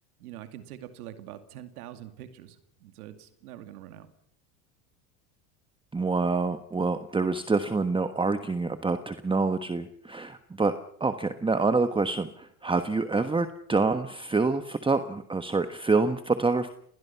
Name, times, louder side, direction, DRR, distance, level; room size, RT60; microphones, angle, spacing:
voice 1, 0.2-4.1, right 12 dB, 90° right, 8 dB, 2.5 m, -44 dB
voice 2, 5.9-10.7 11.0-16.7, right 3 dB, 10° right, 9 dB, 1.3 m, -26 dB
28.0 x 21.0 x 5.8 m, 0.69 s
supercardioid pair, 100°, 43 cm